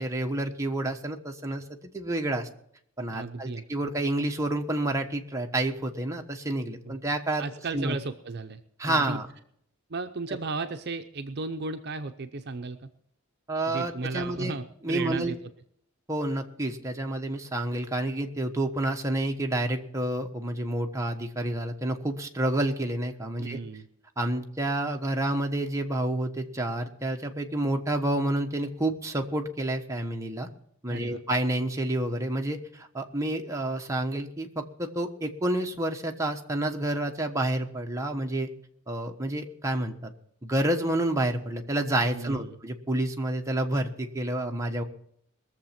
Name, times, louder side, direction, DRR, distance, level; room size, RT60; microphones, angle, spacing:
voice 1, 0.0-1.6 1.9-2.5 3.0-7.4 7.7-8.0 8.8-9.3 13.5-14.6 14.8-15.3 16.1-23.6 24.2-30.5 30.8-38.5 38.9-40.1 40.4-44.8, right 1 dB, 15° right, 2 dB, 1.2 m, -29 dB
voice 2, 3.1-3.6 6.8-7.0 7.4-9.2 9.9-12.9 13.7-15.4 23.4-23.9 30.9-31.2 42.1-42.6, right 3 dB, 50° right, 8 dB, 0.7 m, -35 dB
21.0 x 7.2 x 5.9 m, 0.69 s
head